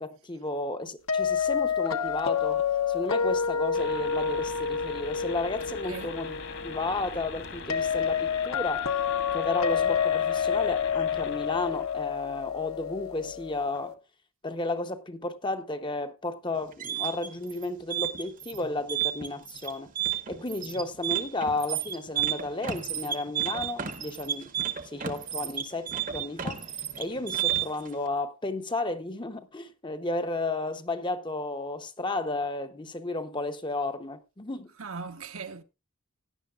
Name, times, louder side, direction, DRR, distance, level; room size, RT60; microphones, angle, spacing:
voice 1, 0.0-2.6 2.9-6.4 6.6-8.9 9.3-14.0 14.4-24.5 24.9-26.6 27.0-34.7, left 2 dB, 20° left, 0.8 m, -33 dB
sound 1, 1.1-13.9, left 7 dB, 70° left, 1.2 m, -29 dB
sound 2, 3.7-12.0, left 4 dB, 55° left, 1.7 m, -42 dB
sound 3, 16.6-27.9, right 10 dB, 35° right, 1.0 m, -31 dB
voice 2, 34.8-35.6, right 5 dB, 70° right, 1.1 m, -38 dB
16.5 x 10.5 x 2.4 m
head